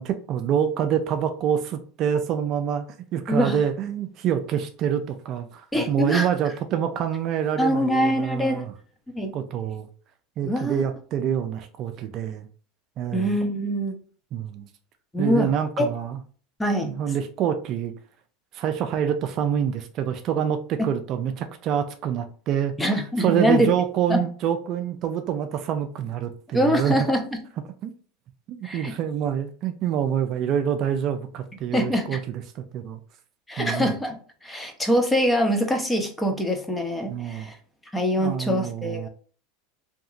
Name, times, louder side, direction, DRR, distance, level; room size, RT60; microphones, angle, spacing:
voice 1, 0.0-2.9 3.1-8.7 9.3-9.9 10.4-12.5 13.0-13.4 14.3-14.7 15.2-16.2 16.8-17.9 18.5-27.0 27.8-27.9 28.5-33.0 33.6-33.9 37.1-37.5 38.2-39.1, right 9 dB, 50° right, 0.3 m, -26 dB
voice 2, 3.3-3.6 5.7-6.3 7.6-8.6 9.1-9.3 10.4-10.8 13.1-14.0 15.1-15.5 15.8-15.9 16.6-16.9 22.8-23.7 24.1-24.2 26.5-27.2 28.6-28.9 31.7-32.2 33.5-37.5 37.9-39.1, equal, 10° left, 0.6 m, -24 dB
2.8 x 2.6 x 2.4 m
hypercardioid pair, 105°, 0 cm